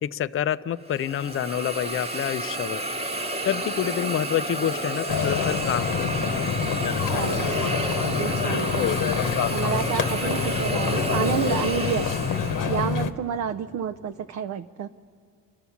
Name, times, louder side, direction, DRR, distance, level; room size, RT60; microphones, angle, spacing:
voice 1, 0.0-2.8 3.4-6.3 8.8-9.0, left 10 dB, 40° left, 12 dB, 0.5 m, -28 dB
Hiss, 0.9-13.0, right 1 dB, 15° right, 1.2 m, -31 dB
sound 1, 5.1-13.1, left 7 dB, 65° left, 1.0 m, -26 dB
voice 2, 7.1-8.9 9.5-12.2 12.7-14.9, right 8 dB, 50° right, 9 dB, 0.5 m, -30 dB
30.0 x 12.5 x 7.1 m, 2.3 s
cardioid pair, 125°, 35 cm